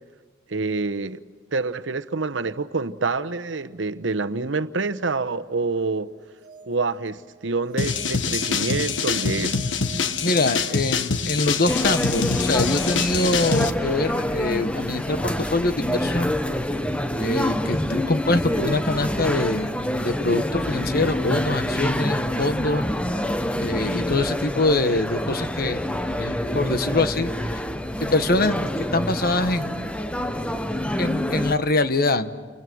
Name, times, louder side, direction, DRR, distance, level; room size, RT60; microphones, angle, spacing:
voice 1, 0.5-1.2 1.5-6.1 6.7-9.6, right 3 dB, 85° right, 1.0 m, -27 dB
sound 1, 6.2-11.0, right 3 dB, 65° right, 1.7 m, -48 dB
sound 2, 7.8-13.7, left 5 dB, 90° left, 1.4 m, -25 dB
voice 2, 10.2-16.3 17.2-22.8 23.6-25.8 26.2-27.6 28.0-29.9 31.0-32.3, left 2 dB, 55° left, 1.3 m, -24 dB
sound 3, 11.7-31.6, left 1 dB, 5° left, 0.9 m, -26 dB
29.5 x 29.5 x 6.3 m
head